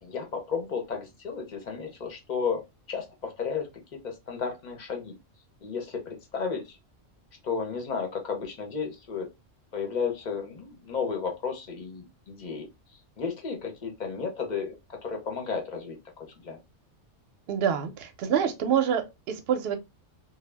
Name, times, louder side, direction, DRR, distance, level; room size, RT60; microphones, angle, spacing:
voice 1, 0.0-2.6 2.9-5.1 5.6-6.8 7.4-9.3 9.7-16.6, left 5 dB, 50° left, 0.6 m, -33 dB
voice 2, 17.5-19.8, right 8 dB, 65° right, 0.7 m, -26 dB
2.2 x 2.1 x 3.2 m
omnidirectional pair, 1.3 m